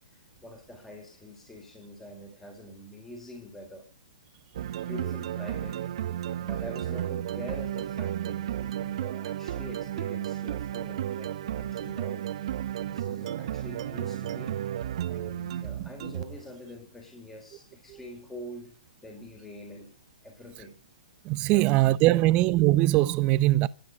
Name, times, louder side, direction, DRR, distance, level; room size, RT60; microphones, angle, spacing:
voice 1, 0.0-3.9 4.9-5.9 6.4-12.3 12.9-14.6 15.1-18.8 19.0-19.9 20.2-20.8 21.5-21.7 22.1-22.2, left 1 dB, 5° left, 4.0 m, -45 dB
sound 1, 4.5-16.5, right 11 dB, 45° right, 1.2 m, -33 dB
voice 2, 21.2-23.7, right 17 dB, 25° right, 0.7 m, -22 dB
25.5 x 10.0 x 5.2 m
figure-of-eight pair, 125°, 4 cm